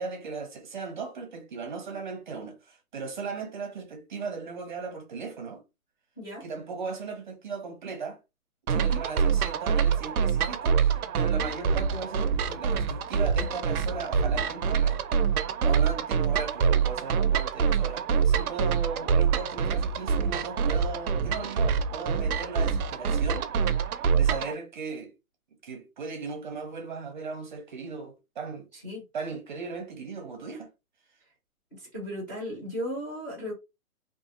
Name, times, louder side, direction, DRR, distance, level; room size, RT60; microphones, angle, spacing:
voice 1, 0.0-5.6 6.4-8.2 8.7-15.0 15.6-23.5 24.1-25.1 25.6-28.7 29.1-30.7, right 4 dB, 35° right, 0.6 m, -37 dB
sound 1, 8.7-24.5, right 6 dB, 80° right, 0.6 m, -25 dB
voice 2, 28.7-29.0 31.7-33.5, equal, 15° left, 0.5 m, -36 dB
2.9 x 2.4 x 2.4 m
hypercardioid pair, 155°, 43 cm